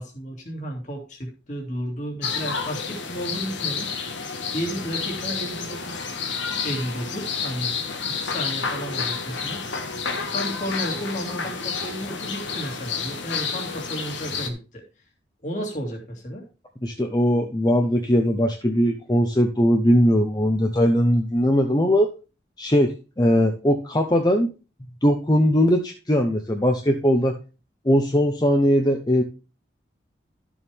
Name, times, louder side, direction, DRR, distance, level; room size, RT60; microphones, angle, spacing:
voice 1, 0.0-6.1 6.6-7.8 8.1-9.6 10.3-14.8 15.4-16.4, equal, 40° left, 0 dB, 2.3 m, -33 dB
sound 1, 2.2-14.5, left 5 dB, 85° left, 1.5 m, -30 dB
voice 2, 16.8-22.1 22.6-24.5 25.0-27.4 27.8-29.2, equal, 20° left, 4 dB, 0.8 m, -20 dB
12.5 x 7.0 x 3.5 m, 0.32 s
head